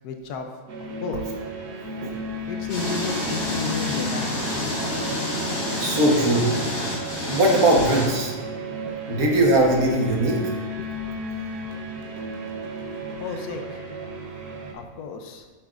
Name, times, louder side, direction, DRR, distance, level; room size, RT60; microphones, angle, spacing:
voice 1, 0.0-0.5 1.0-1.4 2.5-5.2 7.1-7.2 10.2-10.4 10.7-11.2 11.9-12.0 12.7-12.8 13.1-13.8 14.7-15.4, left 5 dB, 90° left, 5 dB, 1.3 m, -34 dB
sound 1, 0.7-14.7, equal, 90° right, 1.4 m, -34 dB
sound 2, 2.7-8.1, left 1 dB, 60° left, 2.1 m, -28 dB
voice 2, 5.8-6.5 7.3-8.3 9.1-10.4, right 1 dB, 70° right, -1 dB, 1.7 m, -20 dB
7.8 x 7.0 x 2.5 m, 1.4 s
omnidirectional pair, 1.6 m